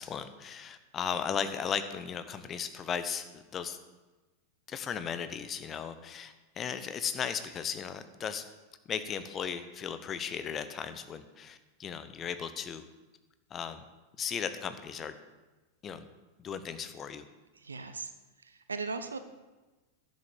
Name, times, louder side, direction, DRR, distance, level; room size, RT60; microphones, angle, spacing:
voice 1, 0.0-3.8 4.7-8.4 8.9-12.8 13.5-13.8 14.2-15.1 15.8-16.0 16.4-17.2, left 7 dB, 25° left, 11 dB, 1.0 m, -36 dB
voice 2, 17.6-18.1 18.5-19.2, right 4 dB, 75° right, 10 dB, 0.8 m, -37 dB
10.5 x 7.4 x 7.2 m, 1.2 s
figure-of-eight pair, 90°, 0 cm